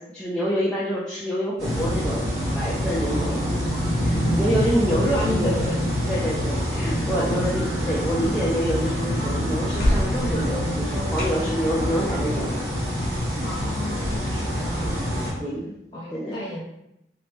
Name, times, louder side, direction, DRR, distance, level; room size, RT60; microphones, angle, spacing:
voice 1, 0.0-5.6 6.1-12.7 14.8-15.0 15.4-15.7 16.1-16.4, equal, 5° left, -7 dB, 0.4 m, -27 dB
sound 1, 1.6-15.3, equal, 65° right, 1.4 m, -26 dB
voice 2, 3.0-3.8 4.7-5.8 7.1-7.5 11.3-12.1 13.4-15.6 15.9-16.6, left 1 dB, 20° left, -7 dB, 1.2 m, -34 dB
sound 2, 5.3-14.9, equal, 55° left, 0.8 m, -33 dB
2.9 x 2.7 x 3.4 m, 0.83 s
head